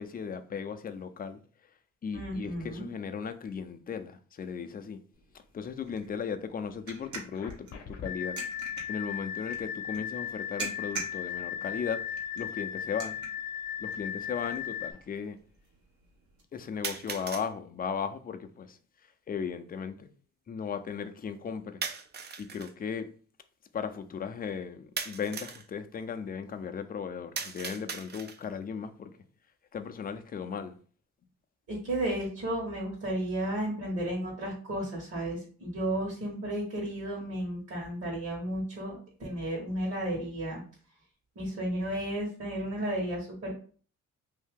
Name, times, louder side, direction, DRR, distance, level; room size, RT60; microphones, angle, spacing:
voice 1, 0.0-1.4 2.0-5.0 5.5-8.4 8.9-12.0 12.3-13.2 13.8-15.4 16.5-18.8 19.3-20.1 20.5-21.8 22.4-23.1 23.7-29.1 29.7-30.8, left 6 dB, 30° left, 0.4 m, -36 dB
voice 2, 2.1-2.9 31.7-40.6 41.4-43.5, right 1 dB, 50° right, 1.3 m, -33 dB
sound 1, 5.1-16.4, right 4 dB, 70° right, 1.1 m, -46 dB
sound 2, 7.3-14.9, left 9 dB, 70° left, 0.7 m, -37 dB
sound 3, 12.5-12.6 13.6-13.7 16.8-17.5 21.8-22.7 25.0-25.7 27.4-28.5, right 5 dB, 35° right, 0.4 m, -38 dB
2.7 x 2.7 x 3.6 m
cardioid pair, 90°, 30 cm